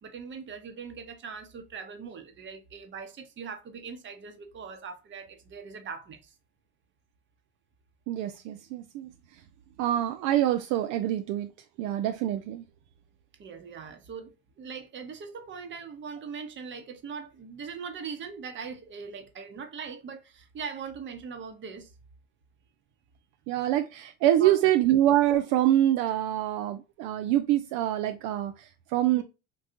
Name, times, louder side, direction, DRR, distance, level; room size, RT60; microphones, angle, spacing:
voice 1, 0.0-6.3 13.4-21.9 24.4-24.7 29.1-29.2, right 6 dB, 40° right, 0.9 m, -41 dB
voice 2, 8.1-9.1 9.8-11.5 11.8-12.6 23.5-29.2, right 12 dB, 70° right, 0.4 m, -25 dB
3.7 x 2.3 x 2.6 m
supercardioid pair, 95°, 31 cm